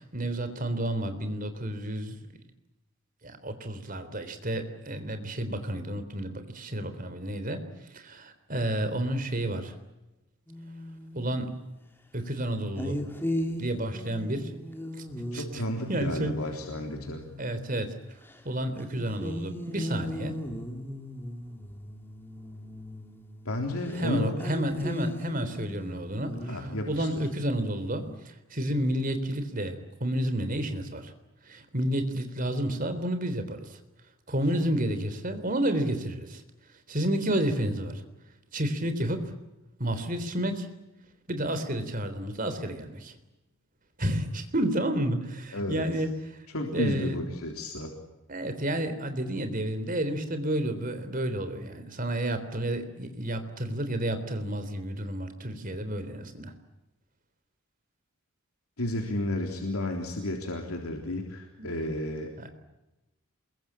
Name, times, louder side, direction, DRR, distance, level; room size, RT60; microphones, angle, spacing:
voice 1, 0.0-2.2 3.2-7.6 7.9-9.7 11.1-11.5 12.1-13.0 13.6-14.6 15.3-15.6 15.9-16.3 17.4-18.0 18.4-20.3 23.9-31.1 31.4-33.8 34.3-36.4 36.9-38.0 38.5-39.3 39.8-40.7 41.3-43.2 44.0-47.2 48.3-56.5 61.6-61.7 62.4-62.5, right 1 dB, 40° right, 9 dB, 3.6 m, -31 dB
sound 1, 10.5-11.4 12.8-17.7 18.2-18.4 18.8-23.5 23.8-24.1 24.4-28.2, left 1 dB, 10° left, 3.5 m, -38 dB
voice 2, 15.3-17.2 23.5-24.4 26.5-27.1 45.5-45.8 46.5-47.9 58.8-62.3, left 1 dB, 90° left, 2 dB, 3.7 m, -32 dB
27.5 x 22.5 x 8.8 m, 0.99 s
head